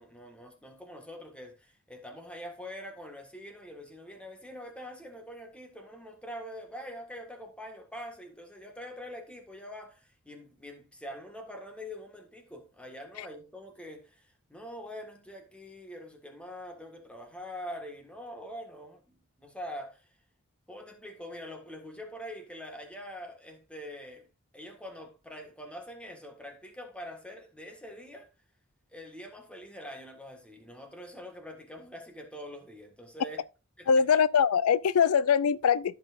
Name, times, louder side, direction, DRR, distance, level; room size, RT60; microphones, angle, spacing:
voice 1, 0.0-20.1 20.7-24.3 24.5-28.3 28.9-33.4 33.8-33.9, equal, 5° left, 1.6 m, -44 dB
voice 2, 33.9-36.0, left 7 dB, 90° left, 0.4 m, -23 dB
14.0 x 5.9 x 2.5 m
head